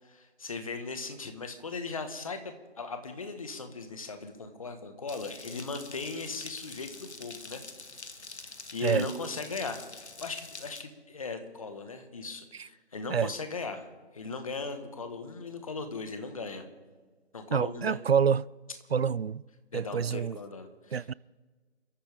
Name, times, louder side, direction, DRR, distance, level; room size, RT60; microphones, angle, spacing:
voice 1, 0.0-7.6 8.4-13.9 14.1-16.7 17.3-18.0 19.7-21.0, left 4 dB, 30° left, 1.5 m, -38 dB
sound 1, 5.1-10.8, left 3 dB, 75° left, 2.0 m, -46 dB
voice 2, 17.5-18.5 18.9-19.4 19.7-20.4 20.9-21.1, right 7 dB, 65° right, 0.5 m, -27 dB
29.5 x 13.5 x 3.6 m
figure-of-eight pair, 165°, 34 cm